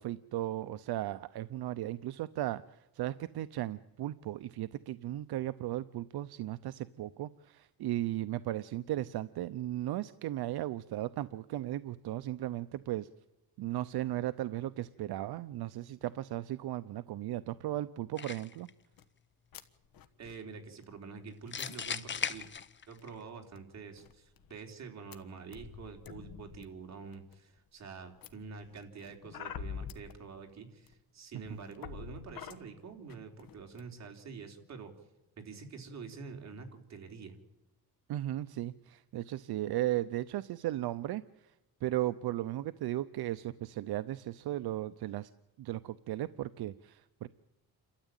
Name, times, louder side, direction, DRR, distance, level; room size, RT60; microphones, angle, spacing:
voice 1, 0.0-13.1 13.6-18.7 31.5-31.6 38.1-41.2 41.8-45.3 45.6-47.3, right 14 dB, 75° right, 13 dB, 0.7 m, -36 dB
sound 1, 18.2-18.7 21.5-23.1, left 7 dB, 30° left, 0.9 m, -37 dB
sound 2, 19.0-19.1 19.5-19.6 19.8-20.3 20.8-20.9 21.5-22.6 23.0-23.2 23.5-23.6 23.9-24.5 25.1-25.2 25.5-26.6 27.1-27.6 28.2-30.1 30.9-31.0 31.3-32.6 33.1-33.2 33.4-33.8, left 7 dB, 60° left, 1.5 m, -46 dB
voice 2, 20.2-22.5 22.9-34.9 35.4-37.4, right 5 dB, 45° right, 3 dB, 3.6 m, -47 dB
29.0 x 13.0 x 9.0 m, 0.98 s
cardioid pair, 150°, 39 cm